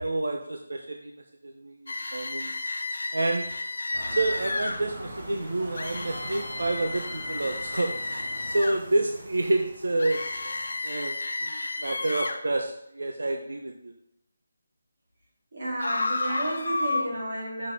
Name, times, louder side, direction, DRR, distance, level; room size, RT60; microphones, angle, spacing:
voice 1, 0.0-2.5 3.1-3.5 4.1-8.2 8.5-10.2 10.8-13.9, right 2 dB, 80° right, 3 dB, 0.8 m, -29 dB
sound 1, 1.9-4.8 5.8-8.8 10.0-12.4 15.8-17.0, left 2 dB, 60° left, 1.0 m, -32 dB
sound 2, 3.9-10.8, right 1 dB, 25° right, 1.7 m, -42 dB
voice 2, 15.5-17.7, right 1 dB, 40° right, -5 dB, 3.1 m, -32 dB
7.4 x 6.5 x 3.6 m, 0.77 s
figure-of-eight pair, 180°, 0 cm